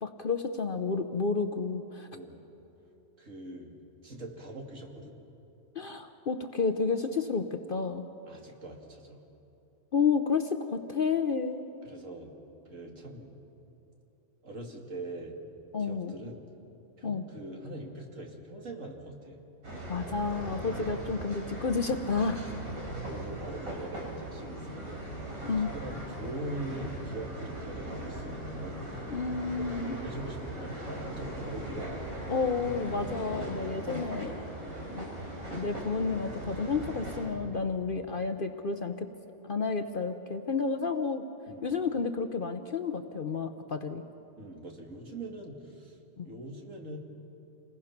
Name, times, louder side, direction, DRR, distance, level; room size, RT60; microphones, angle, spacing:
voice 1, 0.0-2.1 5.8-8.1 9.9-11.6 15.7-16.1 17.0-17.2 19.9-22.5 25.4-25.7 29.1-30.0 32.3-34.4 34.9-35.1 35.5-39.1 39.4-41.2 41.6-44.0 46.2-46.3, left 4 dB, 45° left, 7 dB, 0.8 m, -31 dB
voice 2, 3.2-3.7 4.0-5.1 8.3-9.2 11.8-12.3 12.7-13.3 14.4-15.4 15.8-16.4 17.0-19.4 23.1-25.1 25.7-29.0 29.4-32.0 34.6-34.9 41.5-41.7 44.4-47.0, right 1 dB, 65° right, 1 dB, 2.6 m, -42 dB
sound 1, 19.6-37.2, right 1 dB, 85° right, 5.2 m, -39 dB
28.0 x 20.5 x 5.9 m, 3.0 s
omnidirectional pair, 1.4 m